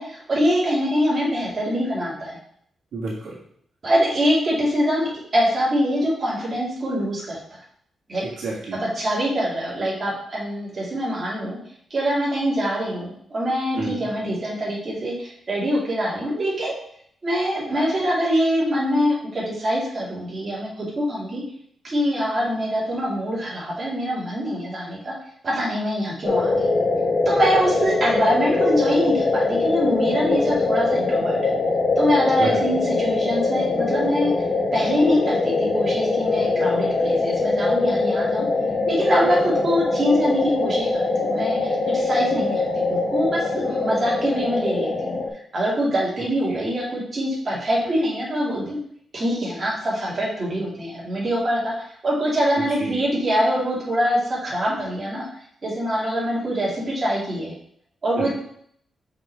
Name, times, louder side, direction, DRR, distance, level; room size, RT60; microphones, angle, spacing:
voice 1, 0.0-2.4 3.8-7.4 8.1-8.2 8.8-11.6 11.9-16.7 17.2-21.4 21.8-25.1 25.4-26.7 27.3-31.4 32.0-34.3 34.7-38.5 38.9-45.2 45.5-48.8 49.1-51.7 52.0-55.3 55.6-57.5 58.0-58.3, equal, 30° right, -7 dB, 2.3 m, -24 dB
voice 2, 2.9-3.4 8.2-8.8 13.8-14.1 32.4-32.6 38.6-38.7 46.5-46.6 52.5-53.0 58.1-58.3, right 3 dB, 70° right, -6 dB, 1.7 m, -30 dB
sound 1, 26.2-45.3, left 3 dB, 30° left, 0.6 m, -22 dB
5.6 x 4.8 x 3.4 m, 0.65 s
wide cardioid pair, 170°, 0 cm